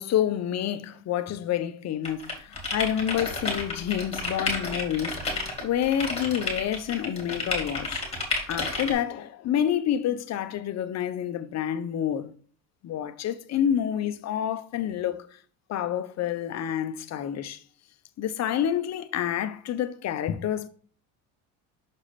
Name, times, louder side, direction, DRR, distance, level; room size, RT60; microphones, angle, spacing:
voice 1, 0.0-8.0 8.5-12.3 12.8-15.3 15.7-17.6 18.2-20.7, left 10 dB, 45° left, 0.8 m, -28 dB
sound 1, 2.0-8.9, left 2 dB, 15° left, 2.7 m, -31 dB
6.4 x 4.9 x 4.1 m
cardioid pair, 120°, 36 cm